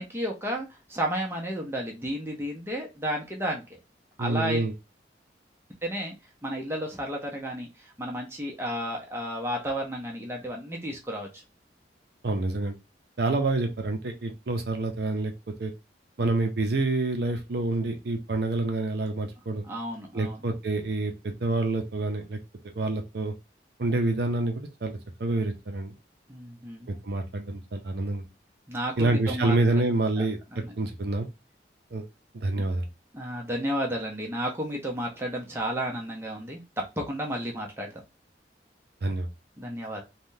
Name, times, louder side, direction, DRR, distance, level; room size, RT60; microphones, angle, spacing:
voice 1, 0.0-3.8 4.2-4.7 5.8-6.1 6.4-11.3 16.2-16.5 19.6-20.4 26.3-26.9 28.7-29.5 30.2-30.3 30.5-30.7 33.1-36.6 37.0-38.0 39.6-40.0, equal, 15° right, 0 dB, 0.8 m, -32 dB
voice 2, 4.2-4.7 12.2-12.7 13.2-15.3 15.6-15.7 16.2-19.6 20.1-22.4 22.6-23.3 23.8-25.9 27.0-28.2 29.0-31.3 31.9-32.0 32.3-32.8 39.0-39.3, right 2 dB, 60° right, 4 dB, 0.5 m, -27 dB
3.5 x 2.2 x 2.7 m, 0.25 s
head